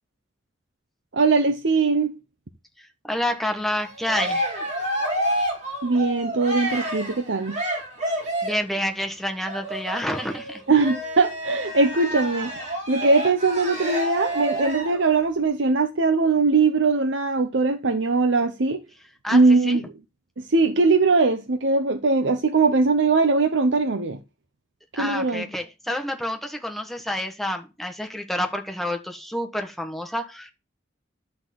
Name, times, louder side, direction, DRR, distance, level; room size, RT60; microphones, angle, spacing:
voice 1, 1.1-2.2 5.8-7.6 10.7-18.8 19.3-19.8 20.4-24.2 24.9-25.5, right 3 dB, 85° right, 0.9 m, -21 dB
voice 2, 3.0-4.5 8.4-10.6 19.2-19.4 19.6-19.8 24.9-30.5, left 1 dB, ahead, 1.5 m, -28 dB
Cheering, 3.7-8.7 9.5-15.0, right 1 dB, 40° right, 4.2 m, -29 dB
12.0 x 4.0 x 7.8 m
head